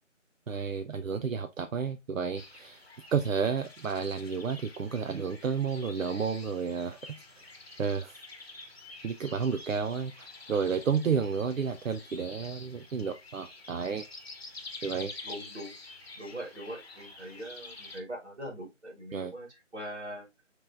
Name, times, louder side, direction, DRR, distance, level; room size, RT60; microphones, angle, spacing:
voice 1, 0.5-2.8 3.1-7.5 7.8-8.2 9.0-14.0 14.8-15.1 19.1-19.3, right 6 dB, 85° right, 0.6 m, -31 dB
sound 1, 2.3-18.0, left 3 dB, 50° left, 0.9 m, -48 dB
voice 2, 15.2-15.8 16.2-20.3, equal, 60° right, 1.9 m, -42 dB
5.2 x 3.1 x 2.5 m
figure-of-eight pair, 170°, 38 cm